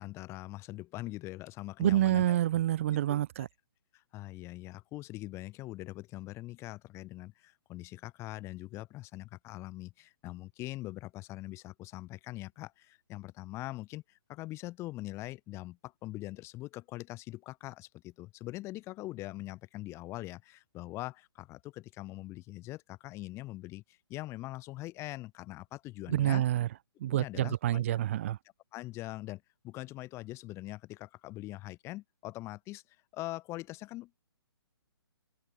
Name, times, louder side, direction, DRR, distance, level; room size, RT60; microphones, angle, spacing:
voice 1, 0.0-2.4 3.1-3.5 3.9-26.4 27.1-27.8 28.7-34.2, left 18 dB, 20° left, 2.7 m, -43 dB
voice 2, 1.8-3.5 26.1-26.7 27.0-28.4, right 12 dB, 30° right, 0.4 m, -28 dB
open air
figure-of-eight pair, 135°, 14 cm